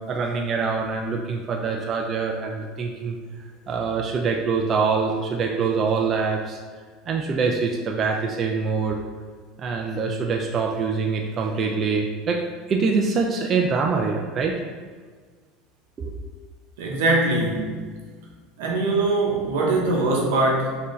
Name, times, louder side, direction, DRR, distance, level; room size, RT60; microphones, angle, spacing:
voice 1, 0.0-3.2 3.7-6.6 7.1-9.0 9.6-12.4 12.7-14.5 16.0-16.1, right 5 dB, 35° right, 1 dB, 0.4 m, -24 dB
voice 2, 16.8-17.7 18.6-20.8, right 2 dB, 85° right, -1 dB, 0.9 m, -22 dB
4.3 x 2.7 x 3.1 m, 1.5 s
supercardioid pair, 125°, 0 cm